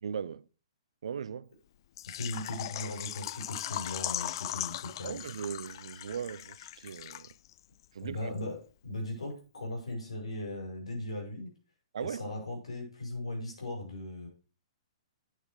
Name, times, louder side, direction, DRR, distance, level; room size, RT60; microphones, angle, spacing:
voice 1, 0.0-0.5 1.0-1.5 5.0-7.3 7.9-8.3 11.9-12.2, right 7 dB, 70° right, 0.6 m, -38 dB
Water / Liquid, 2.0-7.6 7.8-7.9 8.4-8.5, left 13 dB, 50° left, 0.4 m, -39 dB
voice 2, 2.1-5.2 8.0-11.5 12.0-14.3, left 1 dB, 80° left, 6.1 m, -38 dB
8.7 x 8.6 x 5.0 m
hypercardioid pair, 125°, 3 cm